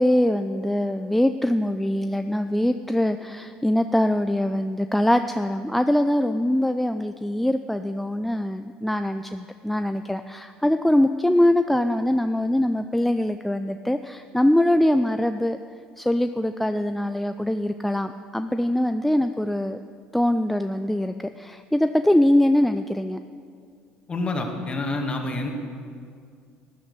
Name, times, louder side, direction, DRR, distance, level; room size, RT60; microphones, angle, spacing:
voice 1, 0.0-15.6 16.0-19.8 20.1-23.2, left 1 dB, 5° left, 8 dB, 0.4 m, -23 dB
voice 2, 24.1-25.5, left 2 dB, 30° left, 3 dB, 2.2 m, -27 dB
13.0 x 10.5 x 6.6 m, 2.2 s
supercardioid pair, 85°, 3 cm